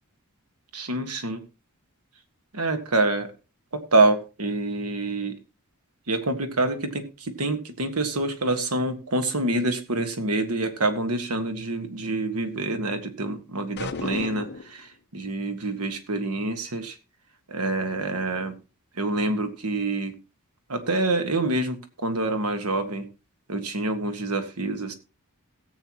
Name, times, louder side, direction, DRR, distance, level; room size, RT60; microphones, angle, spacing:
voice 1, 0.7-1.4 2.5-3.3 3.7-5.4 6.1-17.0 17.5-18.6 19.0-20.1 20.7-23.1 23.5-24.9, right 2 dB, 85° right, 7 dB, 1.6 m, -26 dB
sound 1, 13.8-14.8, left 3 dB, 50° left, 0.9 m, -33 dB
17.5 x 8.0 x 3.0 m, 0.30 s
head